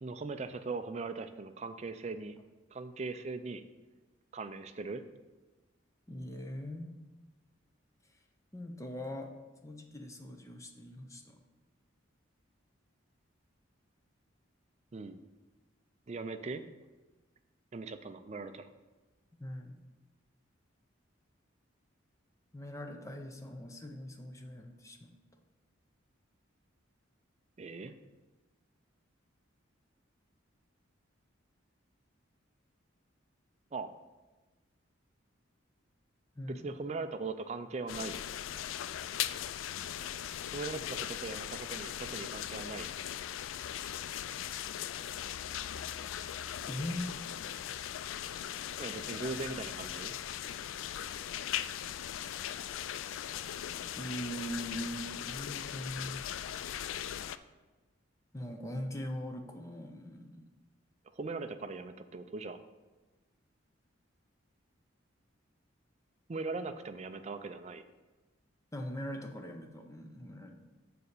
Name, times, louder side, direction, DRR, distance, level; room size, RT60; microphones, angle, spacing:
voice 1, 0.0-2.4 2.7-3.6 4.3-5.0 14.9-15.2 16.1-16.6 17.7-18.7 27.6-27.9 33.7-33.9 36.5-38.2 40.5-42.9 48.8-50.1 61.1-62.6 66.3-67.8, right 3 dB, 35° right, 9 dB, 0.4 m, -40 dB
voice 2, 6.1-6.9 8.5-9.3 9.6-11.4 19.4-19.8 22.5-25.1 36.4-36.7 46.7-47.1 54.0-56.8 58.3-60.5 68.7-70.5, equal, 15° left, 3 dB, 0.6 m, -41 dB
sound 1, 37.9-57.4, left 10 dB, 75° left, 0.3 m, -39 dB
6.8 x 4.2 x 6.7 m, 1.2 s
head